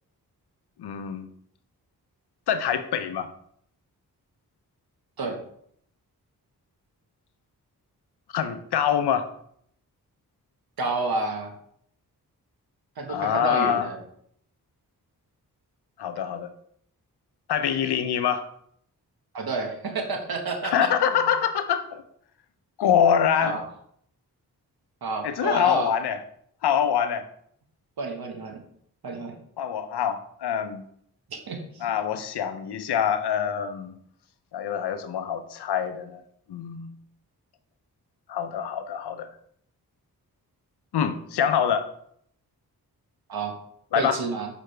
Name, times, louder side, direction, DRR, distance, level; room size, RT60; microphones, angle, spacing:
voice 1, 0.8-1.3 2.5-3.3 8.3-9.3 13.1-13.9 16.0-16.5 17.5-18.5 20.6-22.0 22.8-23.6 25.2-26.2 26.6-27.3 29.6-30.8 31.8-33.9 34.5-36.2 36.5-36.9 38.3-39.3 40.9-41.9 43.9-44.2, left 8 dB, 85° left, 0.7 m, -25 dB
voice 2, 10.8-11.5 13.0-14.0 19.3-20.9 21.2-21.3 23.4-23.6 25.0-25.9 28.0-28.6 29.0-29.4 31.3-31.8 43.3-43.5 43.9-44.5, right 3 dB, 70° right, 1.4 m, -30 dB
6.5 x 4.9 x 3.3 m
cardioid pair, 50°, 39 cm